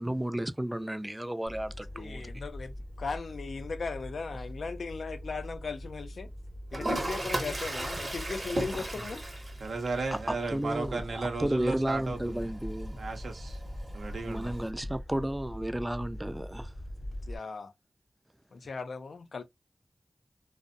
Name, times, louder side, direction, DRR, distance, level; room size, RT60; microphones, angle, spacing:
voice 1, 0.0-2.3 8.7-8.9 10.1-13.0 14.3-16.7, right 1 dB, 15° right, 0.3 m, -33 dB
sound 1, 1.5-17.4, equal, 40° left, 0.7 m, -43 dB
voice 2, 1.9-6.3 6.7-9.2 10.6-10.7 11.7-11.8 17.3-17.7 18.5-19.4, left 4 dB, 80° left, 0.4 m, -38 dB
Toilet flush, 6.7-14.7, right 1 dB, 40° right, 0.7 m, -38 dB
voice 3, 9.6-12.5 13.0-13.6 13.9-14.5, right 3 dB, 85° right, 0.6 m, -35 dB
2.5 x 2.0 x 2.5 m
cardioid pair, 55°, 0 cm